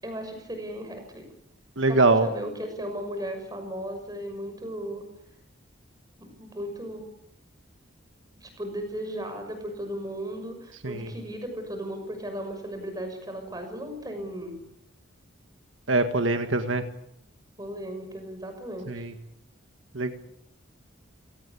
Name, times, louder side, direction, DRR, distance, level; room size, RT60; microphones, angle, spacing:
voice 1, 0.0-1.3 1.9-5.1 6.2-7.1 8.4-14.6 17.6-19.0, equal, 20° right, 5 dB, 6.3 m, -36 dB
voice 2, 1.8-2.3 10.8-11.0 15.9-16.8 18.9-19.1 19.9-20.1, right 3 dB, 75° right, 7 dB, 1.7 m, -23 dB
28.0 x 18.0 x 8.6 m, 0.77 s
head